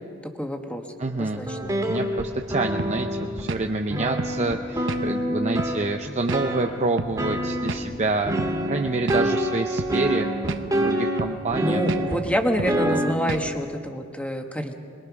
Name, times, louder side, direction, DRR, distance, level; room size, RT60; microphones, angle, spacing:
voice 1, 0.4-1.6 11.6-14.7, equal, 5° left, 4 dB, 1.4 m, -27 dB
voice 2, 1.0-1.5 1.9-3.1 3.3-8.4 8.6-10.3 10.7-11.8 12.8-13.0, right 3 dB, 35° right, 4 dB, 0.7 m, -27 dB
sound 1, 1.3-3.6 3.9-6.8 7.2-7.9 8.3-12.3 12.6-13.2, equal, 20° right, 2.1 m, -26 dB
sound 2, 2.8-3.0 3.5-3.7 4.2-4.4 4.9-5.1 5.6-5.8 6.3-6.4 7.0-7.2 7.7-7.9 8.4-8.5 9.1-9.2 9.8-10.0 10.5-10.7 11.2-11.4 11.9-12.1 12.6-12.8 13.3-13.5, right 3 dB, 65° right, 0.9 m, -30 dB
22.5 x 22.0 x 6.0 m, 2.2 s
head